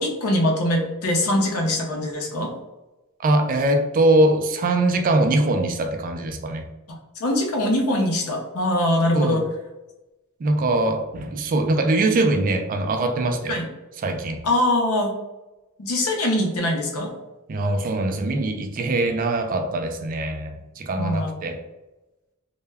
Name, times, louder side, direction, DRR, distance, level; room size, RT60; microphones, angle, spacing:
voice 1, 0.0-2.5 6.9-9.4 13.5-13.6 14.4-15.1 15.8-17.1 21.0-21.3, left 1 dB, 80° left, 1 dB, 0.6 m, -22 dB
voice 2, 3.2-6.6 9.1-9.5 10.4-13.6 14.0-14.4 17.5-21.6, right 2 dB, 40° right, 5 dB, 0.3 m, -22 dB
2.2 x 2.1 x 3.3 m, 1.0 s
head